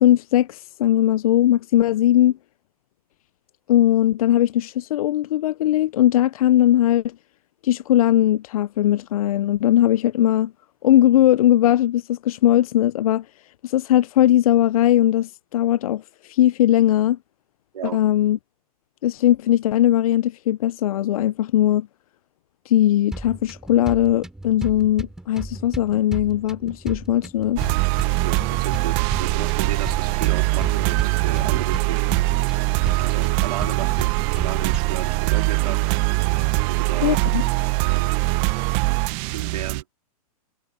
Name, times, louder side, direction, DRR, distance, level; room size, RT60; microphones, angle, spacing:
voice 1, 0.0-2.3 3.7-7.1 7.6-10.5 10.8-13.2 13.6-17.2 17.9-18.4 19.0-21.9 22.7-27.7 37.0-37.4, left 12 dB, 70° left, 0.4 m, -19 dB
sound 1, 23.1-35.1, right 1 dB, 5° right, 2.5 m, -35 dB
sound 2, 27.6-39.8, right 23 dB, 30° right, 0.7 m, -22 dB
voice 2, 28.2-32.5 32.9-35.8 36.7-37.2 37.7-38.1 39.2-39.8, right 9 dB, 85° right, 3.7 m, -33 dB
hypercardioid pair, 155°, 19 cm